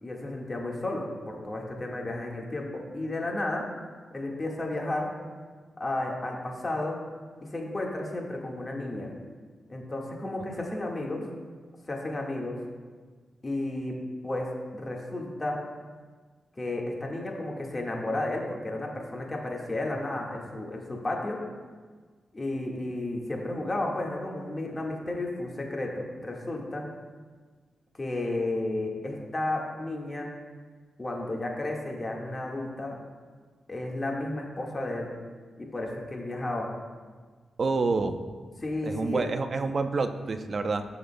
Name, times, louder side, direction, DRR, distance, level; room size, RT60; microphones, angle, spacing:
voice 1, 0.0-3.6 4.1-5.1 5.8-7.0 7.5-9.1 9.7-11.2 11.9-12.6 13.4-13.9 14.2-14.5 14.7-15.6 16.6-21.4 22.3-26.8 28.0-30.3 31.0-33.0 33.7-35.1 35.6-36.7 38.6-39.3, left 2 dB, 35° left, -1 dB, 1.7 m, -32 dB
voice 2, 37.6-38.2 38.8-40.9, right 4 dB, 55° right, 7 dB, 0.6 m, -28 dB
13.5 x 6.7 x 2.2 m, 1.5 s
cardioid pair, 60°, 0 cm